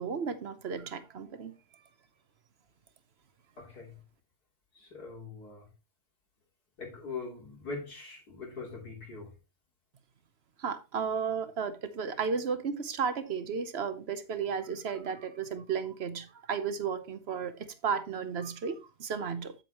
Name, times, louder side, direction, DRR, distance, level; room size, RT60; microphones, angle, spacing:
voice 1, 0.0-1.5 10.6-19.5, right 6 dB, 50° right, 0.9 m, -34 dB
voice 2, 3.6-4.0 4.7-5.7 6.8-9.3, left 4 dB, 85° left, 3.9 m, -42 dB
9.0 x 7.9 x 3.0 m
omnidirectional pair, 1.6 m